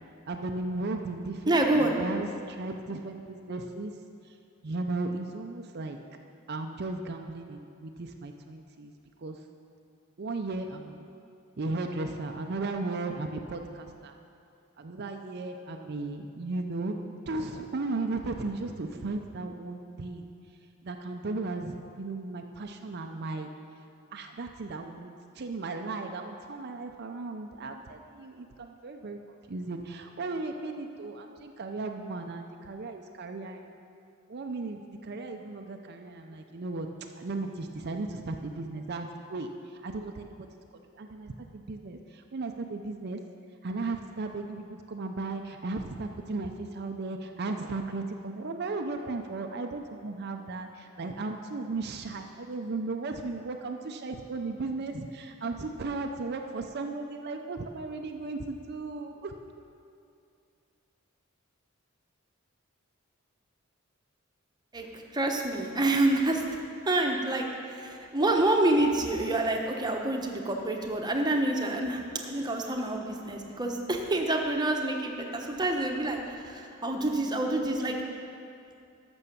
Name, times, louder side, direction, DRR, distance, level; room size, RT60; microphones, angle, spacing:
voice 1, 0.3-3.9 4.6-6.0 6.5-8.9 9.2-9.4 10.2-11.0 11.6-14.1 14.8-20.3 20.8-23.5 24.1-29.2 29.5-33.7 34.3-36.9 37.2-40.5 41.0-43.2 43.6-59.3, right 3 dB, 50° right, 4 dB, 0.6 m, -36 dB
voice 2, 1.5-2.0 64.7-66.6 66.8-78.0, right 2 dB, 20° right, 1 dB, 1.0 m, -27 dB
12.5 x 6.2 x 6.9 m, 2.5 s
head